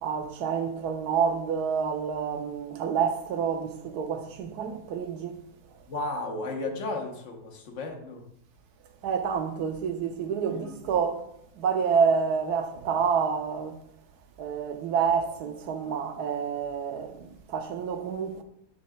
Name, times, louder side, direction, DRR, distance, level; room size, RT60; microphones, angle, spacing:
voice 1, 0.0-5.4 9.0-11.2 11.6-13.8 14.4-18.4, right 6 dB, 85° right, 1.3 m, -28 dB
voice 2, 5.9-8.2 10.5-10.8, left 2 dB, 55° left, 1.3 m, -34 dB
7.4 x 7.2 x 2.3 m
omnidirectional pair, 1.6 m